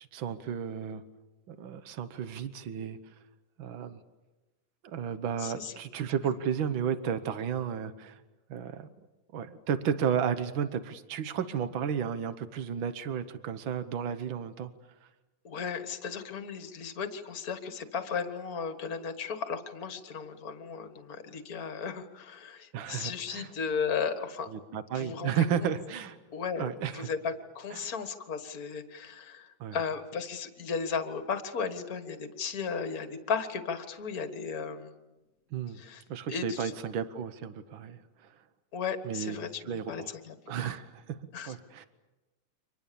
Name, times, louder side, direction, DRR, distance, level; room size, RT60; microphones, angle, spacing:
voice 1, 0.1-1.0 1.5-3.1 3.6-4.0 4.8-8.2 8.5-8.9 9.3-14.7 15.0-15.1 22.7-23.5 24.5-26.2 26.6-27.1 27.7-27.9 29.6-29.8 35.5-35.8 36.1-38.4 39.0-39.3 39.6-40.1 40.5-41.2 41.5-41.9, right 8 dB, 85° right, 11 dB, 1.0 m, -33 dB
voice 2, 5.4-5.7 15.4-24.5 24.9-25.4 26.3-26.6 26.9-34.9 35.7-36.0 36.3-36.7 38.7-39.5 39.9-40.7 41.3-41.5, left 6 dB, 40° left, 8 dB, 1.4 m, -35 dB
30.0 x 25.0 x 7.0 m, 1.1 s
omnidirectional pair, 3.8 m